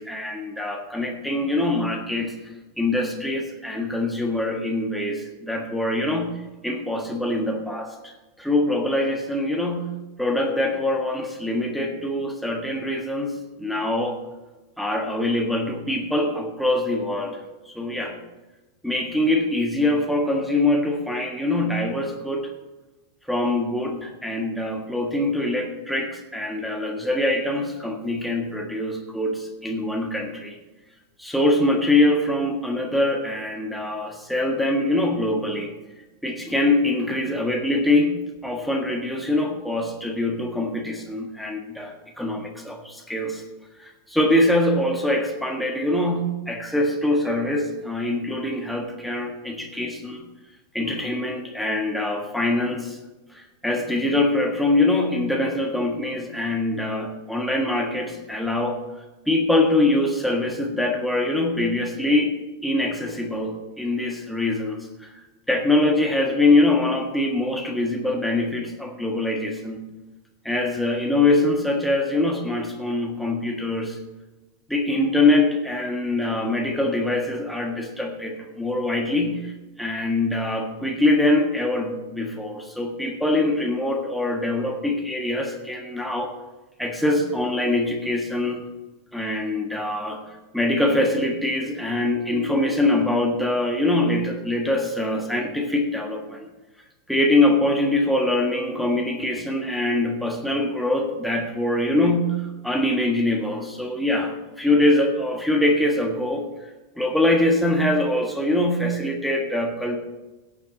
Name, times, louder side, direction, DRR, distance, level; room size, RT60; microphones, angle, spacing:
voice 1, 0.0-2.3 2.8-6.4 6.6-9.9 10.2-14.2 14.8-17.4 17.7-18.2 18.8-22.5 23.3-30.6 31.2-35.7 36.2-43.4 43.8-50.2 50.7-53.0 53.3-58.8 59.3-62.3 62.6-65.2 65.5-69.8 70.4-74.0 74.7-86.3 86.8-88.6 89.1-90.2 90.5-96.5 97.1-106.5 107.0-110.0, left 2 dB, ahead, 1 dB, 1.6 m, -23 dB
17.0 x 7.3 x 4.2 m, 1.1 s
figure-of-eight pair, 90°, 0 cm